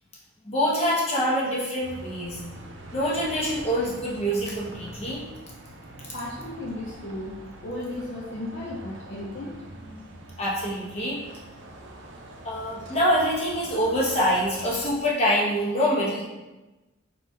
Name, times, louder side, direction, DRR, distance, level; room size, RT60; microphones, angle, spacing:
voice 1, 0.4-2.4 2.9-5.2 10.4-11.2 12.4-16.2, equal, 30° left, -5 dB, 1.0 m, -25 dB
Bus, 1.8-14.9, right 1 dB, 60° right, 0.6 m, -44 dB
voice 2, 6.1-10.4, left 1 dB, 60° left, -4 dB, 0.6 m, -36 dB
5.1 x 3.8 x 2.7 m, 1.1 s
head